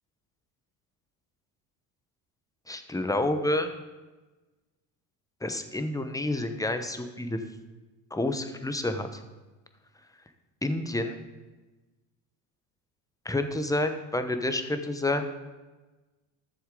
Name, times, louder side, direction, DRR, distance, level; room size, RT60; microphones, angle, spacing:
voice 1, 2.7-3.7 5.4-7.4 8.1-9.2 10.6-11.1 13.2-15.3, left 1 dB, 10° left, 8 dB, 1.0 m, -29 dB
13.5 x 7.1 x 3.8 m, 1.2 s
supercardioid pair, 80°, 44 cm